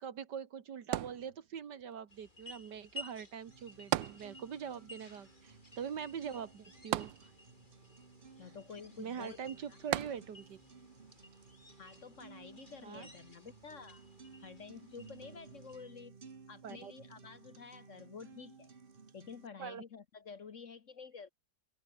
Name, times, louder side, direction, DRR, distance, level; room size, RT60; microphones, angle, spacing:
voice 1, 0.0-7.1 9.0-10.6 12.8-13.1 16.6-16.9 19.6-19.8, right 7 dB, 65° right, 2.0 m, -43 dB
sound 1, 0.9-1.8 3.9-4.8 5.1-5.2 6.9-7.8 9.9-10.6 11.3-11.4, right 13 dB, 85° right, 1.5 m, -37 dB
sound 2, 2.1-15.8, left 2 dB, 25° left, 4.5 m, -56 dB
sound 3, 3.5-19.5, right 5 dB, 30° right, 1.4 m, -57 dB
voice 2, 8.4-9.4 9.7-9.8 11.8-14.0 14.4-16.2 16.5-18.7 19.1-21.3, left 6 dB, 50° left, 1.2 m, -50 dB
omnidirectional pair, 2.0 m